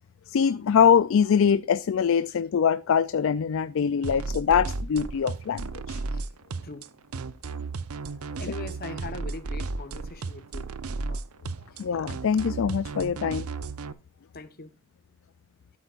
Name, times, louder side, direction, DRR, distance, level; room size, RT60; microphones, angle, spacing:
voice 1, 0.3-6.0 11.8-13.5, left 7 dB, 60° left, 0.4 m, -23 dB
sound 1, 4.0-13.9, right 3 dB, 80° right, 0.7 m, -34 dB
voice 2, 8.4-10.7 11.1-11.2 11.7-11.8 14.3-14.7, left 3 dB, 45° left, 0.9 m, -41 dB
13.0 x 8.0 x 2.4 m
head